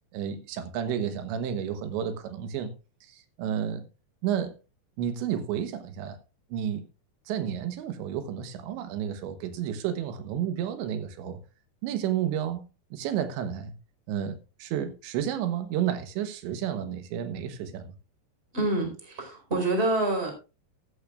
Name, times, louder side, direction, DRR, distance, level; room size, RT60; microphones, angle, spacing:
voice 1, 0.1-2.7 3.1-3.8 4.2-4.5 5.0-6.2 6.5-6.8 7.3-11.4 11.8-12.6 12.9-13.7 14.1-17.9, right 9 dB, 85° right, 3.4 m, -31 dB
voice 2, 18.5-20.3, right 2 dB, 15° right, 4.2 m, -27 dB
14.0 x 14.0 x 2.4 m
omnidirectional pair, 5.1 m